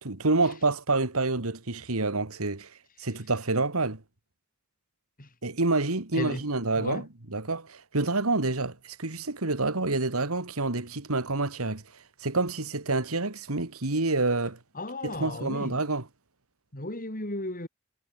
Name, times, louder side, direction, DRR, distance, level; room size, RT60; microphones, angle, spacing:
voice 1, 0.0-2.7 3.0-4.0 5.4-11.8 12.2-14.6 15.0-16.0, right 3 dB, 80° right, 2.2 m, -28 dB
voice 2, 14.7-15.8 16.7-17.7, left 1 dB, 40° left, 4.5 m, -34 dB
head